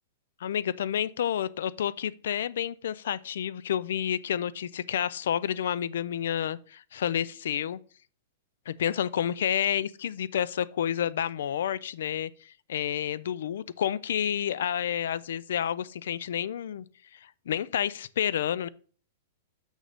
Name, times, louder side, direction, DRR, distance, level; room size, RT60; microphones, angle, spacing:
voice 1, 0.4-7.8 8.7-16.9 17.5-18.7, left 9 dB, 70° left, 0.3 m, -30 dB
6.6 x 6.2 x 3.4 m
supercardioid pair, 170°, 0 cm